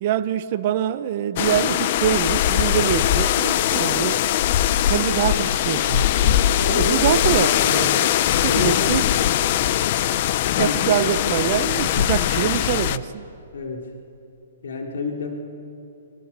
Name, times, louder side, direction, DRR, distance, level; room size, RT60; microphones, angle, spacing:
voice 1, 0.0-4.2 4.9-8.1 8.4-9.1 10.6-13.2, right 11 dB, 40° right, 0.8 m, -24 dB
sound 1, 1.4-13.0, left 11 dB, 40° left, 0.7 m, -21 dB
voice 2, 6.5-7.6 8.4-8.9 10.5-10.8 13.5-13.9 14.6-15.4, left 4 dB, 80° left, 3.7 m, -28 dB
28.5 x 24.5 x 7.4 m
hypercardioid pair, 165°, 0 cm